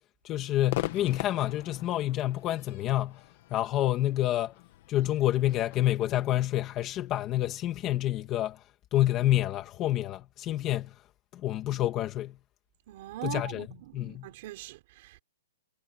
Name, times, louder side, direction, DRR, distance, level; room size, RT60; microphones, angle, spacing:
voice 1, 0.2-3.2 3.5-4.5 4.9-8.6 8.9-10.9 11.4-12.4 13.2-13.7 13.9-14.3, left 14 dB, 15° left, 2.1 m, -28 dB
Crowd / Fireworks, 0.7-8.0, left 16 dB, 35° left, 1.9 m, -42 dB
voice 2, 12.9-15.2, right 17 dB, 30° right, 4.5 m, -41 dB
hypercardioid pair, 180°, 0 cm